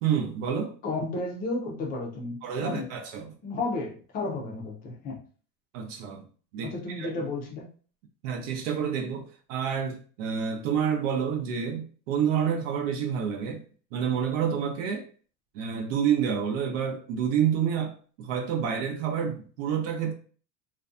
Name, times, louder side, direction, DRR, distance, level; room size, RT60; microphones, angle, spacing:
voice 1, 0.0-0.7 2.4-3.3 5.7-6.2 6.5-7.2 8.2-13.6 13.9-15.1 15.5-17.9 18.2-20.1, right 8 dB, 70° right, 0.6 m, -28 dB
voice 2, 0.8-2.4 2.6-2.9 3.4-5.2 6.6-7.7, left 3 dB, 25° left, 0.4 m, -32 dB
2.5 x 2.1 x 2.4 m
supercardioid pair, 160°, 39 cm